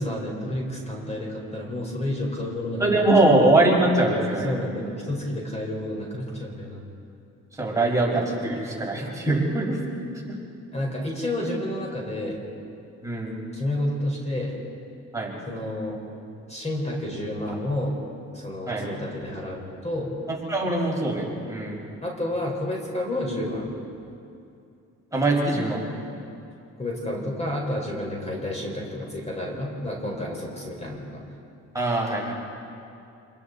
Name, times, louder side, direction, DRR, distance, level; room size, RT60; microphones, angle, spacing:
voice 1, 0.0-3.3 4.4-6.8 10.7-12.4 13.5-14.6 15.5-16.0 16.5-18.0 18.3-20.1 22.0-23.7 26.8-31.2, left 1 dB, 20° left, -1 dB, 5.0 m, -30 dB
voice 2, 2.8-4.5 7.5-10.0 10.2-10.4 13.0-13.4 15.1-15.3 18.7-18.9 20.3-21.8 25.1-25.9 31.7-32.3, right 2 dB, 10° right, -3 dB, 5.6 m, -22 dB
29.0 x 21.5 x 4.2 m, 2.6 s
cardioid pair, 90°, 30 cm